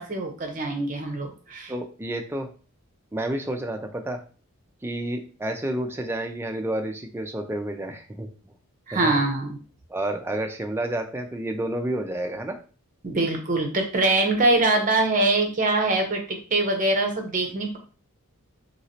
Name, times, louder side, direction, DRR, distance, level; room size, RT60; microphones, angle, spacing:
voice 1, 0.0-1.7 8.9-9.6 13.0-17.8, right 2 dB, 35° right, 3 dB, 0.7 m, -23 dB
voice 2, 1.7-2.5 3.1-4.2 4.8-8.3 8.9-9.2 9.9-12.6, right 1 dB, 10° right, 4 dB, 0.3 m, -30 dB
3.0 x 2.8 x 2.8 m, 0.38 s
head